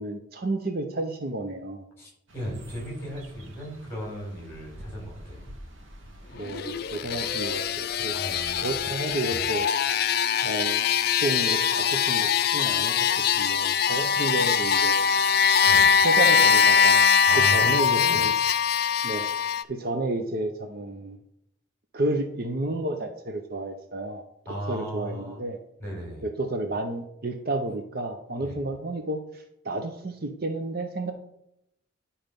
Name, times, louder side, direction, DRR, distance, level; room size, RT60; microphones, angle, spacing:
voice 1, 0.0-1.8 6.3-8.1 8.6-9.6 10.4-10.8 11.2-13.1 13.3-14.9 16.0-17.1 17.3-18.3 19.0-19.3 19.7-21.2 21.9-24.2 24.7-25.6 26.2-31.1, right 2 dB, 45° right, 5 dB, 0.7 m, -31 dB
voice 2, 2.0-5.5 8.1-8.9 9.3-9.5 15.7-15.9 17.3-18.2 24.5-25.4 25.8-26.3 28.4-28.6, equal, 10° left, -3 dB, 4.1 m, -36 dB
sound 1, 2.3-9.2, right 1 dB, 75° right, 1.5 m, -48 dB
sound 2, 6.4-19.6, left 7 dB, 50° left, 0.4 m, -22 dB
11.0 x 4.4 x 5.2 m, 0.78 s
head